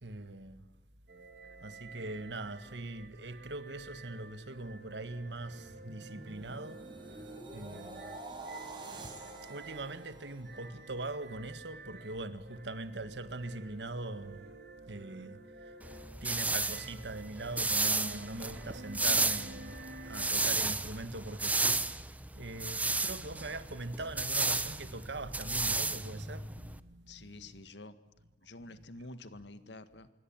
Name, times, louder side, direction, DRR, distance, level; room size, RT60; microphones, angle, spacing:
voice 1, 0.0-0.7 1.6-6.8 7.5-8.2 9.4-14.5 14.8-15.4 16.2-19.8 20.1-27.3, right 2 dB, 85° right, 1.8 m, -42 dB
sound 1, 1.1-20.4, right 2 dB, 70° right, 4.1 m, -51 dB
sound 2, 5.5-11.3 11.7-12.0, right 2 dB, 25° right, 5.4 m, -48 dB
sound 3, 15.8-26.8, right 3 dB, 10° right, 1.0 m, -33 dB
voice 2, 27.1-28.0 28.4-30.1, left 2 dB, 90° left, 1.9 m, -48 dB
26.5 x 23.0 x 8.9 m
head